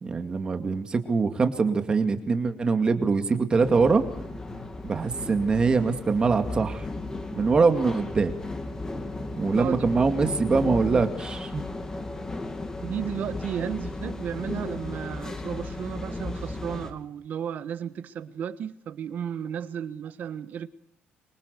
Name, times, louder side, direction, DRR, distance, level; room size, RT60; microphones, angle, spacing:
voice 1, 0.0-4.0 4.8-6.9 7.4-8.3 9.4-11.6, right 4 dB, 20° right, 2.2 m, -23 dB
sound 1, 3.6-16.9, left 2 dB, 15° left, 2.5 m, -35 dB
voice 2, 12.8-20.7, right 8 dB, 45° right, 1.4 m, -33 dB
26.0 x 24.0 x 6.9 m
cardioid pair, 180°, 4 cm